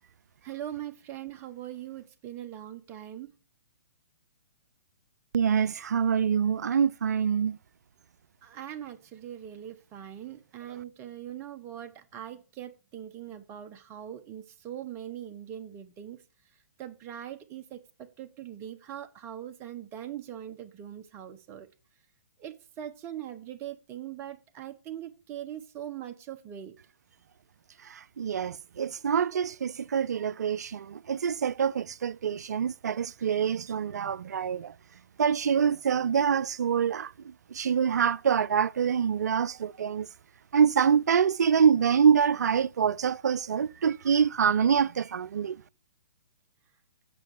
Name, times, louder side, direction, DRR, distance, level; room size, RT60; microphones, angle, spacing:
voice 1, 0.4-3.3 8.4-16.2 16.8-21.7 22.4-26.7, right 11 dB, 25° right, 1.2 m, -41 dB
voice 2, 5.3-7.6 27.9-34.7 35.2-37.1 37.5-40.1 40.5-45.6, right 7 dB, 65° right, 0.5 m, -25 dB
8.3 x 6.2 x 8.1 m
figure-of-eight pair, 125°, 9 cm